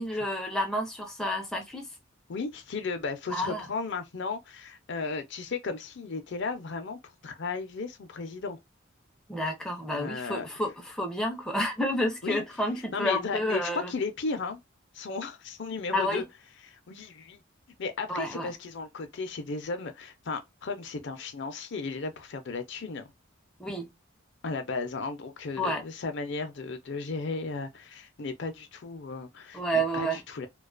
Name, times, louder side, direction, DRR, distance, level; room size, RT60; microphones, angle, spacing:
voice 1, 0.0-1.9 3.3-3.6 9.3-13.9 15.9-16.2 18.1-18.5 23.6-23.9 25.6-25.8 29.5-30.2, equal, 5° left, 0.5 m, -30 dB
voice 2, 2.3-8.6 9.9-10.5 12.2-12.4 12.9-14.6 14.9-16.2 16.6-17.4 17.8-23.1 24.4-30.5, left 4 dB, 60° left, 0.5 m, -35 dB
2.4 x 2.3 x 2.3 m
head